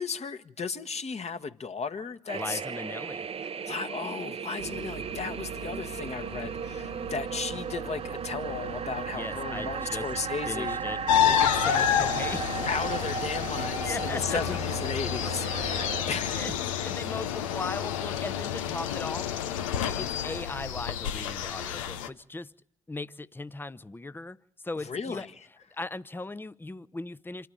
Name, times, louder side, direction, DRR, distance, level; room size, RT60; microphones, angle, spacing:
voice 1, 0.0-2.6 3.4-10.8 12.7-16.9 24.8-25.3, left 5 dB, 40° left, 1.5 m, -35 dB
voice 2, 2.3-3.3 9.1-10.1 10.5-12.7 13.8-14.4 15.7-16.1 16.4-16.5 16.8-19.3 19.8-22.5 22.9-24.4 24.6-25.3 25.8-27.5, left 2 dB, 15° left, 0.8 m, -38 dB
sound 1, 2.3-16.0, right 6 dB, 35° right, 0.8 m, -36 dB
sound 2, 4.6-16.6, right 4 dB, 80° right, 2.3 m, -42 dB
sound 3, 11.1-22.1, left 10 dB, 80° left, 0.8 m, -29 dB
27.0 x 12.5 x 8.7 m
hypercardioid pair, 45°, 16 cm